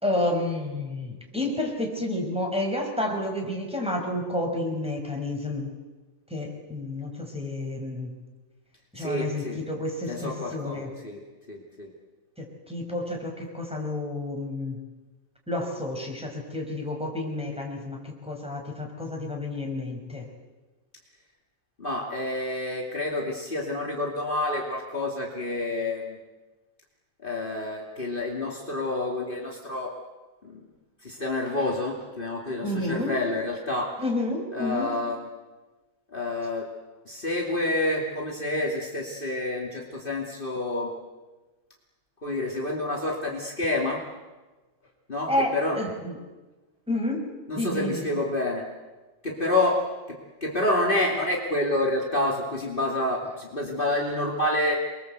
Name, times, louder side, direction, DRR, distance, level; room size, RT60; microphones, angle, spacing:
voice 1, 0.0-5.7 6.3-8.1 8.9-10.9 12.4-14.8 15.5-20.3 32.6-33.2 34.0-34.9 45.3-46.2 46.9-47.3 47.5-48.1, left 1 dB, ahead, 0 dB, 5.0 m, -30 dB
voice 2, 8.9-9.6 10.1-11.2 11.5-11.9 21.8-26.2 27.2-29.9 30.4-30.7 31.0-33.9 34.5-35.2 36.1-36.7 37.0-40.9 42.2-44.0 45.1-45.8 47.5-48.6 49.2-54.7, left 2 dB, 25° left, -2 dB, 1.2 m, -28 dB
29.0 x 23.0 x 8.1 m, 1.2 s
omnidirectional pair, 5.6 m